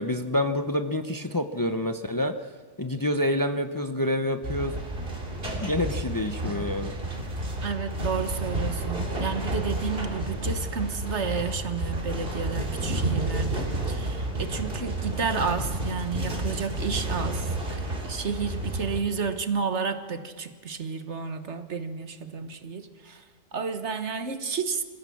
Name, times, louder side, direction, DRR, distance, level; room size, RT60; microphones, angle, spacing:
voice 1, 0.0-2.4 2.8-4.8 5.6-6.9, left 1 dB, 20° left, 8 dB, 0.7 m, -27 dB
sound 1, 4.4-19.0, right 1 dB, 50° right, 3.2 m, -31 dB
voice 2, 7.6-23.2 23.5-24.8, right 5 dB, 65° right, 9 dB, 1.6 m, -31 dB
27.0 x 15.5 x 7.2 m, 1.5 s
omnidirectional pair, 1.3 m